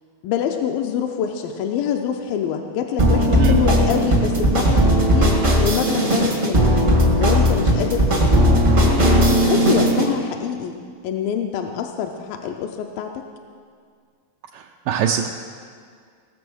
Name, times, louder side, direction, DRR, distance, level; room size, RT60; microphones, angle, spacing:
voice 1, 0.2-5.3 5.6-6.9 7.2-8.6 9.2-10.7 11.0-13.3, left 8 dB, 80° left, 3 dB, 2.3 m, -25 dB
sound 1, 3.0-10.1, equal, 55° right, 0.5 m, -17 dB
voice 2, 14.5-15.3, right 9 dB, 85° right, 1 dB, 1.9 m, -23 dB
18.5 x 6.8 x 6.2 m, 2.1 s
omnidirectional pair, 4.4 m